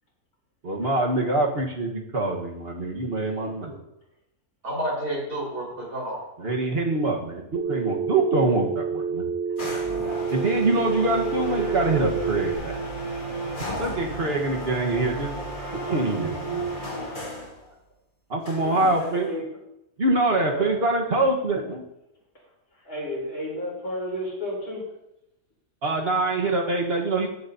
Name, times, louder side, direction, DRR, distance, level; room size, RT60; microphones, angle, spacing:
voice 1, 0.6-3.7 6.4-9.2 10.3-12.7 13.8-15.3 15.9-16.6 18.3-19.3 20.0-21.8 25.8-27.3, right 2 dB, 40° right, 1 dB, 1.6 m, -24 dB
voice 2, 3.3-3.8 4.6-6.2, right 1 dB, 85° right, -4 dB, 5.3 m, -31 dB
Telephone, 7.6-12.6, right 5 dB, 60° right, 1.0 m, -28 dB
sound 1, 9.6-17.6 18.4-19.4, right 2 dB, 35° left, 2.3 m, -34 dB
voice 3, 18.6-19.6 20.3-20.8 22.7-24.8, equal, 75° left, -5 dB, 4.7 m, -33 dB
16.0 x 8.1 x 2.8 m, 0.84 s
omnidirectional pair, 1.6 m